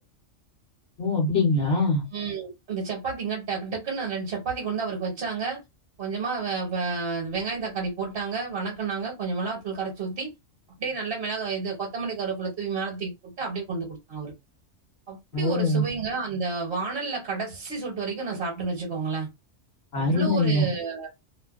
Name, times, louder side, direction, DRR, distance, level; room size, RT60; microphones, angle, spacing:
voice 1, 1.0-2.0 15.3-15.8 19.9-20.7, left 2 dB, 60° left, 1.0 m, -23 dB
voice 2, 2.1-5.6 6.0-10.3 10.8-14.3 15.1-19.3 19.9-21.1, right 4 dB, 55° right, 1.0 m, -30 dB
2.5 x 2.1 x 2.3 m
omnidirectional pair, 1.3 m